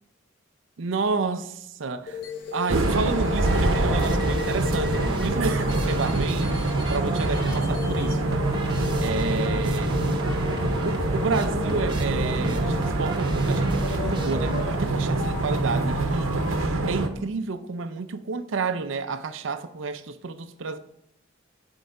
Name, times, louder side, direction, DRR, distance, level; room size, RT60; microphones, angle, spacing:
voice 1, 0.8-2.2 2.5-6.5 6.9-8.3 9.0-10.0 10.8-16.3 16.9-20.8, right 4 dB, 70° right, 0.5 m, -30 dB
sound 1, 2.1-16.7, left 6 dB, 50° left, 0.8 m, -36 dB
sound 2, 2.7-15.1, right 1 dB, 25° right, 0.9 m, -33 dB
sound 3, 2.7-17.1, right 2 dB, 85° right, 0.9 m, -25 dB
6.4 x 4.7 x 6.6 m
head